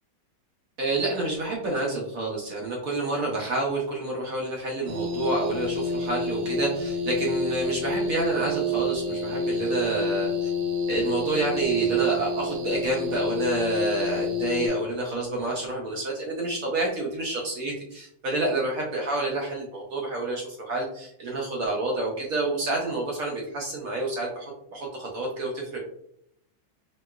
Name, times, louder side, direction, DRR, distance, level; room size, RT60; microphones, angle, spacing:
voice 1, 0.8-10.5 10.9-25.8, right 2 dB, 70° right, -2 dB, 0.8 m, -28 dB
sound 1, 4.9-14.7, left 1 dB, 90° right, 1.3 m, -28 dB
3.0 x 2.9 x 2.2 m, 0.71 s
omnidirectional pair, 2.0 m